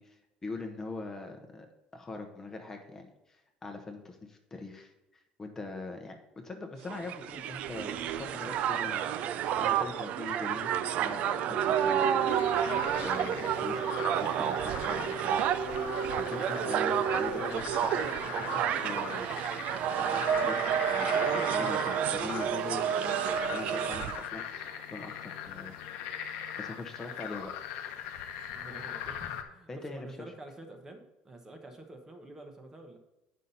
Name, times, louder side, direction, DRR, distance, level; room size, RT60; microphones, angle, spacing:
voice 1, 0.0-1.7 1.9-10.7 11.0-12.3 13.0-13.8 14.2-15.5 16.1-19.3 19.9-20.6 20.9-23.2 23.5-25.8 26.6-27.6 29.7-30.3, left 3 dB, 15° left, 4 dB, 0.9 m, -42 dB
Crowd, 6.9-24.3, right 9 dB, 50° right, 0.4 m, -30 dB
sound 1, 11.0-17.5, right 5 dB, 75° right, 1.2 m, -35 dB
sound 2, 12.3-29.4, left 9 dB, 80° left, 0.9 m, -40 dB
voice 2, 16.4-17.0 27.0-27.1 28.5-33.0, right 2 dB, 20° right, 4 dB, 0.9 m, -48 dB
9.1 x 5.6 x 4.0 m, 0.98 s
cardioid pair, 155°, 3 cm